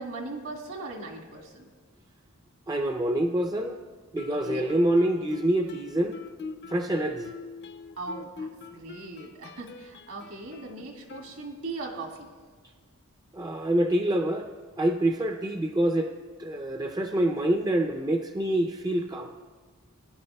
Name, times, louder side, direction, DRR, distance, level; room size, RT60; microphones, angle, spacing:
voice 1, 0.0-1.7 4.3-4.8 8.0-12.3, right 3 dB, 70° right, 1 dB, 1.8 m, -39 dB
voice 2, 2.7-3.8 4.1-6.2 6.7-7.3 13.3-14.5 14.8-16.1 16.4-19.3, right 1 dB, 20° right, 5 dB, 0.4 m, -26 dB
Guitar, 4.2-11.9, left 4 dB, 50° left, 0.5 m, -43 dB
19.0 x 10.5 x 2.2 m, 1.5 s
head